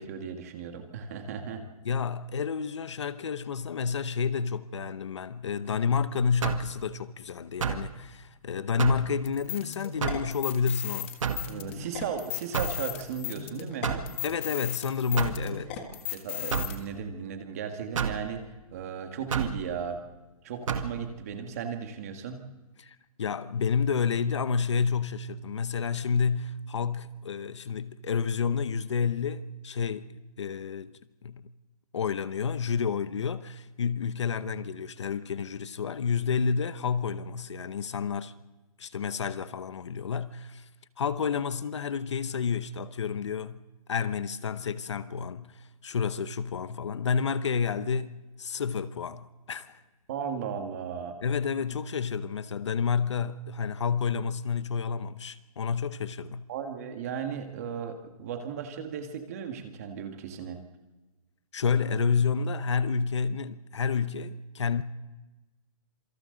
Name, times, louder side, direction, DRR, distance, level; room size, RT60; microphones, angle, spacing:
voice 1, 0.0-1.6 11.5-14.0 15.8-18.4 18.7-20.0 20.4-22.4 50.1-51.2 56.5-60.6, right 7 dB, 25° right, 1.8 m, -36 dB
voice 2, 1.8-11.2 14.2-15.8 22.8-30.9 31.2-31.5 31.9-38.3 38.8-40.7 41.0-43.6 43.9-49.8 51.2-56.4 61.5-64.8, left 6 dB, 50° left, 0.8 m, -30 dB
sound 1, 6.4-6.7 7.6-7.9 8.8-9.1 10.0-10.3 11.2-11.5 12.5-12.8 13.8-14.1 15.2-15.4 16.5-16.8 18.0-18.2 19.3-19.6 20.7-20.9, right 7 dB, 60° right, 1.9 m, -30 dB
sound 2, 9.3-16.8, left 13 dB, 20° left, 1.6 m, -36 dB
27.0 x 25.0 x 3.9 m
hypercardioid pair, 180°, 19 cm